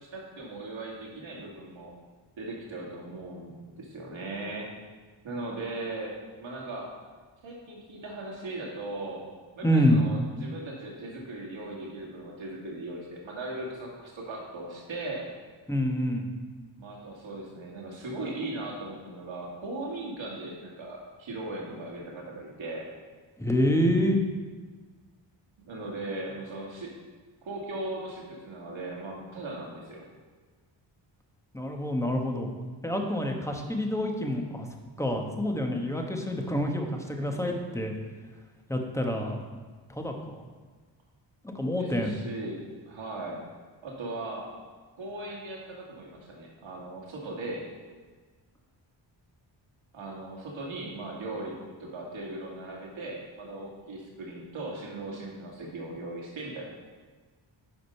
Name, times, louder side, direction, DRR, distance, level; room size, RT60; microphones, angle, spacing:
voice 1, 0.1-1.9 2.4-4.7 5.2-6.9 7.4-9.3 9.6-15.3 16.8-22.8 25.7-26.9 27.4-30.0 41.8-43.4 43.8-44.5 45.0-47.6 49.9-56.7, right 2 dB, 75° right, -2 dB, 2.3 m, -38 dB
voice 2, 9.6-10.0 15.7-16.3 23.4-24.2 31.5-32.5 32.8-34.7 35.0-38.0 38.7-39.5 39.9-40.4 41.4-42.1, equal, 5° left, 2 dB, 1.1 m, -27 dB
10.0 x 5.0 x 5.5 m, 1.4 s
wide cardioid pair, 105°, 47 cm